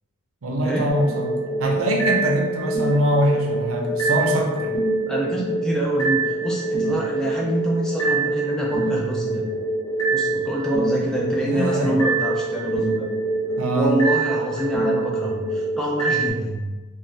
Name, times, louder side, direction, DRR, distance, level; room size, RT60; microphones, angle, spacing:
voice 1, 0.4-1.3 1.6-4.7 11.5-12.0 13.6-14.0, equal, 75° right, 0 dB, 0.6 m, -23 dB
sound 1, 0.9-16.3, right 3 dB, 85° left, 1.1 m, -25 dB
voice 2, 5.1-9.4 10.1-13.1 13.7-16.7, right 1 dB, 5° left, -4 dB, 0.3 m, -26 dB
2.6 x 2.3 x 3.2 m, 1.2 s
head